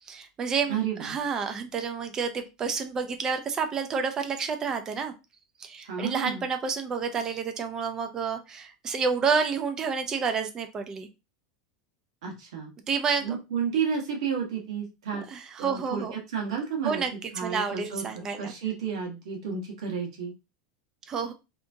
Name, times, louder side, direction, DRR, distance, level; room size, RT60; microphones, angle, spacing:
voice 1, 0.1-5.1 5.6-11.1 12.9-13.4 15.3-16.1 16.8-18.5 21.1-21.3, right 5 dB, 20° right, 7 dB, 0.5 m, -29 dB
voice 2, 0.7-1.2 5.9-6.4 12.2-12.7 13.2-15.3 15.6-17.0 17.3-18.0 18.4-20.3, right 6 dB, 85° right, 0 dB, 1.2 m, -31 dB
3.3 x 2.9 x 2.6 m, 0.27 s
supercardioid pair, 165°, 3 cm